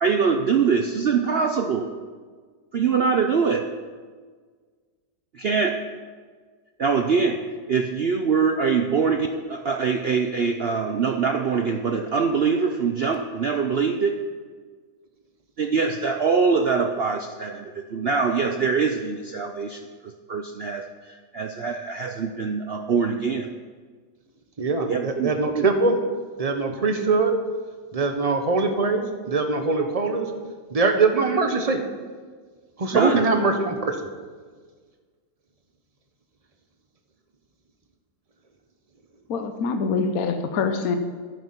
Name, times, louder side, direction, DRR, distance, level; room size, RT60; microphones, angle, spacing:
voice 1, 0.0-1.9 2.7-3.7 5.3-5.8 6.8-7.4 7.7-14.2 15.6-23.5 24.9-25.7 32.9-33.3, right 5 dB, 70° right, 5 dB, 0.5 m, -23 dB
voice 2, 24.6-26.0 26.4-27.3 27.9-30.3 30.7-31.8 32.8-34.0, right 3 dB, 25° right, 5 dB, 1.0 m, -22 dB
voice 3, 39.3-41.0, left 5 dB, 60° left, 7 dB, 1.2 m, -25 dB
11.5 x 9.7 x 5.9 m, 1.6 s
omnidirectional pair, 1.9 m